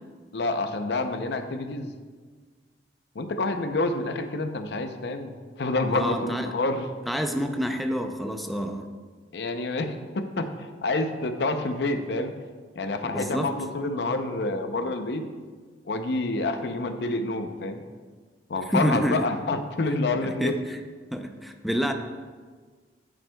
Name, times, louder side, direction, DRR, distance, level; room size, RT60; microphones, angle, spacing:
voice 1, 0.3-1.9 3.1-6.9 9.3-12.4 12.8-15.2 15.8-17.8 18.5-20.5, left 2 dB, 65° left, 7 dB, 0.6 m, -28 dB
voice 2, 5.9-6.5 7.1-8.9 13.0-13.5 18.7-19.2 20.2-20.8 21.1-21.9, equal, ahead, 5 dB, 0.5 m, -28 dB
8.9 x 8.8 x 2.3 m, 1.5 s
head